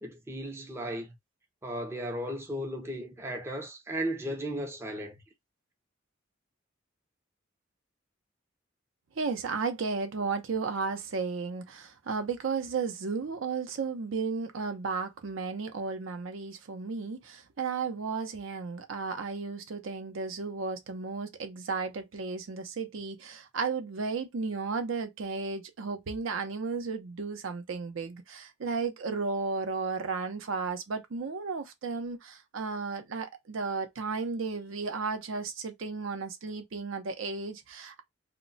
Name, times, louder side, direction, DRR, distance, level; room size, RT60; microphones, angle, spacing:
voice 1, 0.0-1.1 1.6-5.2, equal, 15° right, 0.4 m, -35 dB
voice 2, 9.2-38.0, right 4 dB, 70° right, 0.5 m, -34 dB
2.1 x 2.0 x 3.8 m
head